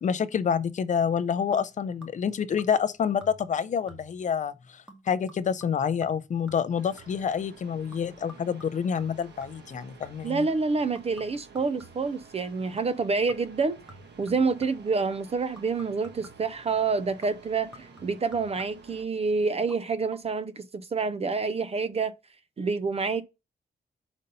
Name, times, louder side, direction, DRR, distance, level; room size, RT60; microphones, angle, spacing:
voice 1, 0.0-10.5, left 7 dB, 45° left, 0.4 m, -28 dB
sound 1, 1.5-2.3 2.6-2.9 3.2-3.6 3.9-4.3 4.9-7.3 7.9-10.4 11.0-12.2 12.8-13.0 13.3-14.9 15.6-16.6 17.2-19.0 19.6-19.8 20.1-20.2, equal, 5° right, 1.1 m, -52 dB
sound 2, 6.8-19.1, right 4 dB, 85° right, 1.2 m, -52 dB
voice 2, 10.2-13.8 14.2-20.6 20.9-22.1 22.6-23.2, right 4 dB, 35° right, 0.4 m, -27 dB
5.2 x 4.0 x 5.3 m
wide cardioid pair, 170°, 17 cm